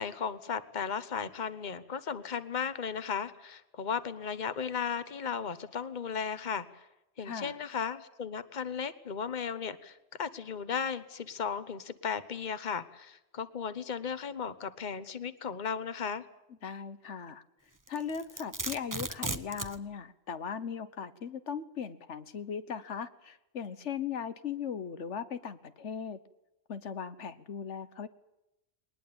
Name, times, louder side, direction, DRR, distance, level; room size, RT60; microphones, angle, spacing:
voice 1, 0.0-6.7 7.2-16.2, left 6 dB, 40° left, 13 dB, 1.3 m, -35 dB
voice 2, 7.2-7.5 16.6-17.4 17.9-26.2 26.7-28.1, left 7 dB, 90° left, 12 dB, 1.5 m, -38 dB
Domestic sounds home sounds, 17.9-19.8, right 2 dB, 20° right, 1.0 m, -36 dB
21.5 x 20.0 x 8.8 m, 0.91 s
omnidirectional pair, 1.2 m